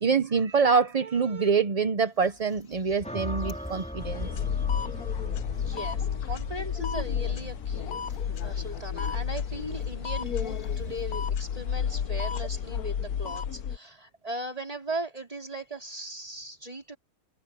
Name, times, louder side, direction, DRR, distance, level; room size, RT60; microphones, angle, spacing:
voice 1, 0.0-4.3, right 5 dB, 40° right, 0.5 m, -25 dB
sound 1, 2.0-12.0, left 2 dB, 60° left, 3.6 m, -53 dB
sound 2, 3.0-11.3, equal, 5° left, 4.4 m, -41 dB
sound 3, 4.0-13.8, left 8 dB, 80° left, 1.4 m, -31 dB
voice 2, 5.5-7.9 8.4-17.0, right 1 dB, 25° right, 4.4 m, -38 dB
omnidirectional pair, 1.6 m